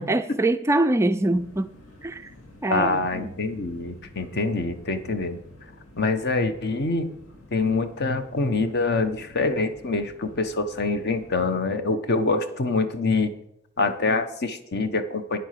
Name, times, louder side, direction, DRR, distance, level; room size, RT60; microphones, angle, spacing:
voice 1, 0.0-1.7 2.0-2.3 2.6-3.3, right 2 dB, 15° right, 9 dB, 0.3 m, -24 dB
sound 1, 1.3-11.4, left 1 dB, 75° left, 2.1 m, -50 dB
voice 2, 2.7-5.4 6.0-7.1 7.5-13.3 13.8-15.4, left 3 dB, 50° left, 10 dB, 0.9 m, -25 dB
9.3 x 7.8 x 5.8 m, 0.77 s
head